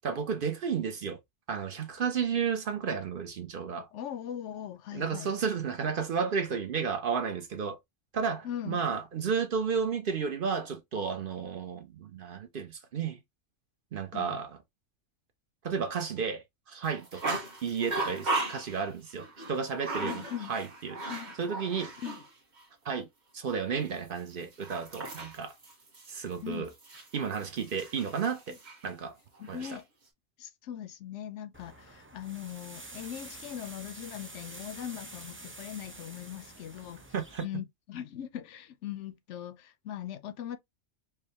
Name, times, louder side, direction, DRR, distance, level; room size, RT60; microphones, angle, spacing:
voice 1, 0.0-1.2 1.5-3.9 4.9-7.8 8.1-13.2 13.9-14.6 15.6-21.0 21.4-22.0 22.8-23.1 23.3-25.5 26.1-26.7 27.1-28.6 28.8-29.2 29.5-29.8 37.1-37.5, right 6 dB, 55° right, 0.7 m, -32 dB
voice 2, 3.9-5.3 8.4-9.0 14.1-14.4 20.0-20.5 21.1-21.3 22.0-22.2 26.4-26.7 29.4-29.9 30.4-37.0 37.4-40.6, left 10 dB, 75° left, 0.9 m, -40 dB
sound 1, 16.8-22.3 22.6-22.7 24.2-28.9 29.4-29.8, right 2 dB, 40° right, 1.3 m, -37 dB
sound 2, 31.5-37.4, right 2 dB, 20° right, 0.3 m, -48 dB
4.8 x 2.1 x 2.8 m
omnidirectional pair, 1.3 m